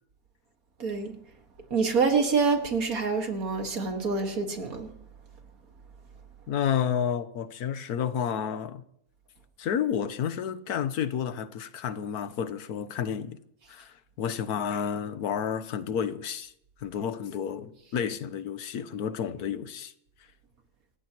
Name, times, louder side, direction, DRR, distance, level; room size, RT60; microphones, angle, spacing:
voice 1, 0.8-1.2 1.7-4.9, right 4 dB, 70° right, 2.3 m, -26 dB
voice 2, 6.5-8.8 9.6-13.4 13.7-16.5 16.8-19.9, left 8 dB, 85° left, 1.4 m, -31 dB
27.5 x 15.0 x 3.0 m
omnidirectional pair, 1.6 m